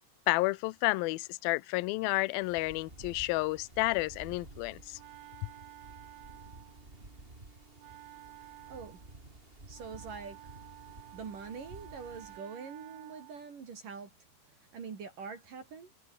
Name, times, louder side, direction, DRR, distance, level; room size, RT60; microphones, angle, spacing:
voice 1, 0.3-5.0, left 22 dB, 80° left, 2.2 m, -31 dB
sound 1, 2.4-12.4, right 2 dB, 15° right, 3.8 m, -52 dB
Wind instrument woodwind instrument, 4.4-13.5, right 15 dB, 70° right, 2.8 m, -53 dB
voice 2, 8.4-9.0 9.7-10.4 11.1-14.1 14.5-15.9, right 5 dB, 50° right, 4.7 m, -44 dB
omnidirectional pair, 5.0 m